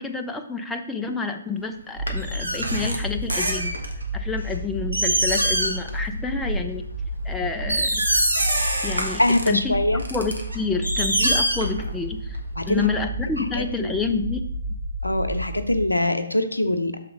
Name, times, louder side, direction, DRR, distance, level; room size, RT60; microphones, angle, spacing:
voice 1, 0.0-3.7 4.1-6.8 7.2-8.0 8.8-9.2 9.5-9.8 10.1-12.4 12.7-14.4, left 4 dB, 5° left, 3 dB, 0.5 m, -28 dB
sound 1, 1.9-15.9, equal, 30° right, 1.9 m, -31 dB
sound 2, 2.1-4.0 4.5-4.6 4.9-6.0 6.3-6.6 7.1-7.2 7.6-9.5 10.0-12.1 12.3-12.4, right 1 dB, 80° right, 1.3 m, -24 dB
voice 2, 9.2-10.0 12.6-13.0 13.4-13.9 15.0-17.0, left 1 dB, 85° left, 9 dB, 0.7 m, -23 dB
6.6 x 3.9 x 5.1 m, 0.72 s
figure-of-eight pair, 135°, 0 cm